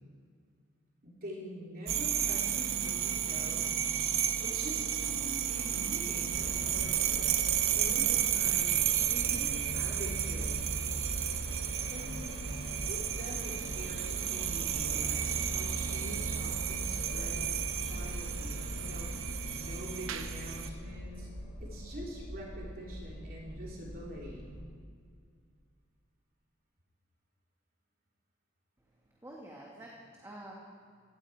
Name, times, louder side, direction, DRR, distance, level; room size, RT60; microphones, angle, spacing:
voice 1, 1.0-3.7 4.4-7.3 7.7-10.6 11.9-12.3 12.7-21.3 21.6-24.6, equal, 45° right, -3 dB, 3.3 m, -45 dB
sound 1, 1.9-20.7, right 10 dB, 65° right, 0.9 m, -32 dB
sound 2, 6.3-24.7, equal, 55° left, 3.2 m, -41 dB
voice 2, 28.8-30.5, right 1 dB, 15° right, -3 dB, 1.8 m, -49 dB
17.5 x 16.5 x 4.7 m, 2.1 s
head